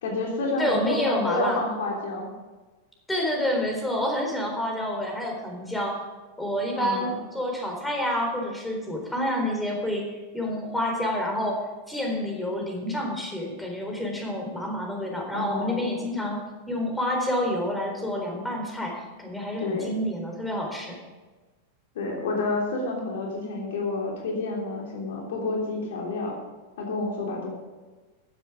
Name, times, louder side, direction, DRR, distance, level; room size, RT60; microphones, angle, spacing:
voice 1, 0.0-2.3 6.8-7.2 15.3-16.0 19.6-19.9 21.9-26.4 26.8-27.5, left 2 dB, 60° left, -1 dB, 3.2 m, -29 dB
voice 2, 0.6-1.6 3.1-6.0 6.4-10.1 10.3-11.6 11.9-16.4 16.7-20.9, left 1 dB, 5° left, 0 dB, 4.1 m, -28 dB
14.5 x 10.5 x 5.0 m, 1.3 s
figure-of-eight pair, 90°, 0 cm